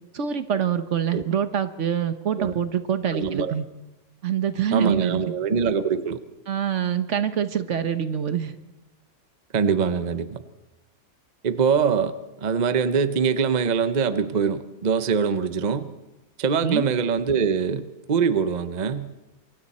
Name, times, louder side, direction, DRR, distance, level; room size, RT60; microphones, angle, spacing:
voice 1, 0.1-3.6 4.2-5.2 6.5-8.5 16.6-16.9, right 8 dB, 55° right, 11 dB, 1.1 m, -25 dB
voice 2, 3.1-3.5 4.7-6.2 9.5-10.4 11.4-12.1 12.4-15.9 16.4-19.1, right 6 dB, 35° right, 11 dB, 0.8 m, -23 dB
27.5 x 23.5 x 4.2 m, 1.0 s
omnidirectional pair, 1.6 m